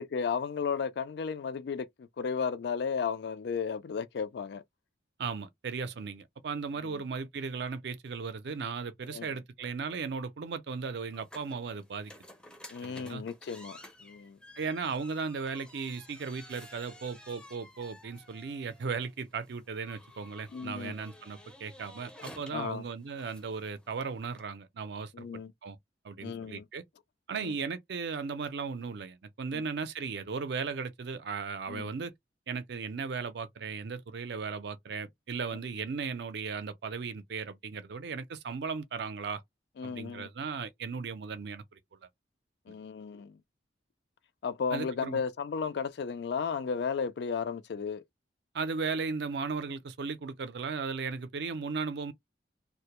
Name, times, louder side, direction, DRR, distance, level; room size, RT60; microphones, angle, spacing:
voice 1, 0.0-4.6 6.8-7.0 9.1-9.3 12.7-14.4 20.5-20.9 22.5-22.8 25.1-25.5 26.2-26.7 27.3-27.5 29.5-29.6 31.7-31.9 39.8-40.3 42.7-43.4 44.4-48.0, left 6 dB, 60° left, 0.3 m, -34 dB
voice 2, 5.2-12.1 12.8-13.2 14.6-25.2 25.6-25.8 26.0-26.8 27.3-32.1 32.5-39.4 39.8-42.1 44.7-45.2 48.5-52.1, right 5 dB, 65° right, 0.4 m, -36 dB
sound 1, 11.1-24.5, left 1 dB, 5° left, 0.5 m, -53 dB
2.1 x 2.0 x 2.9 m
head